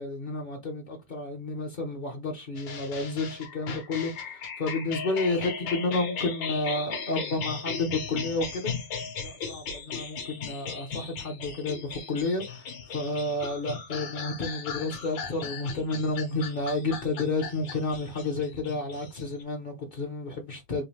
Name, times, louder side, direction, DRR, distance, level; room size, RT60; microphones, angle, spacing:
voice 1, 0.0-8.7 9.2-20.8, left 2 dB, 60° left, 0.5 m, -31 dB
sound 1, 2.6-19.4, left 6 dB, 75° left, 1.6 m, -37 dB
3.8 x 2.6 x 3.2 m
omnidirectional pair, 2.1 m